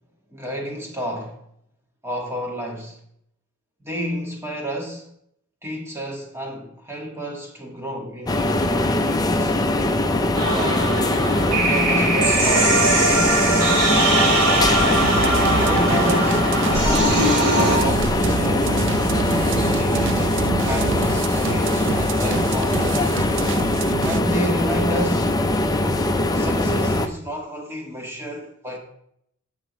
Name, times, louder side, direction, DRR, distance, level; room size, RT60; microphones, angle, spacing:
voice 1, 0.3-1.4 2.0-3.0 3.8-5.1 5.6-9.5 10.5-11.1 11.6-14.8 15.5-18.9 19.6-23.2 24.0-25.3 26.3-28.8, equal, 10° right, 2.0 m, -30 dB
sound 1, 8.3-27.1, left 1 dB, 15° left, 0.6 m, -21 dB
sound 2, 10.3-17.8, right 2 dB, 90° right, 3.7 m, -21 dB
sound 3, 14.9-24.2, right 6 dB, 55° right, 0.4 m, -28 dB
16.5 x 6.0 x 3.2 m
head